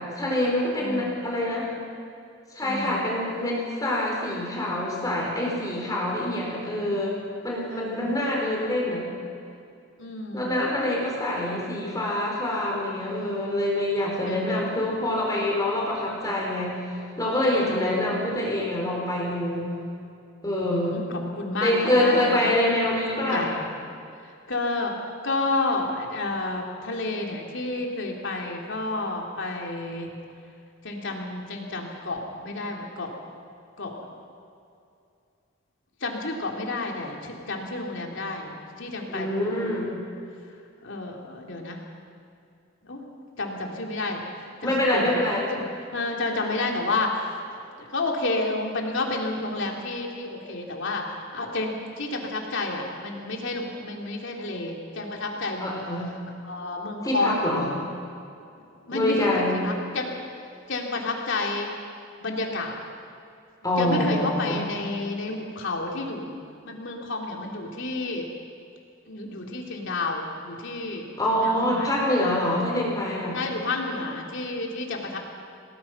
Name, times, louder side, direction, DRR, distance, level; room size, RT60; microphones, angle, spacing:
voice 1, 0.1-1.7 2.5-7.1 7.4-9.0 10.3-16.8 17.2-19.7 20.4-21.0 21.6-23.5 39.1-39.9 44.6-45.4 55.6-56.1 57.0-57.7 58.9-59.5 63.6-64.6 71.2-73.4, left 1 dB, 20° left, -3 dB, 4.4 m, -25 dB
voice 2, 0.8-1.1 2.6-3.0 7.7-8.1 10.0-10.6 14.3-14.7 16.1-16.2 17.6-18.2 20.6-22.5 23.1-23.6 24.2-24.9 25.2-30.1 30.8-33.1 33.8-34.0 36.0-39.9 40.8-41.8 42.8-43.0 43.4-55.7 56.4-57.5 58.8-59.3 59.6-60.1 60.7-61.7 62.2-62.7 63.8-66.4 66.6-68.3 69.1-71.9 73.3-75.2, left 2 dB, 65° left, 0 dB, 3.3 m, -30 dB
27.5 x 19.0 x 6.1 m, 2.5 s
head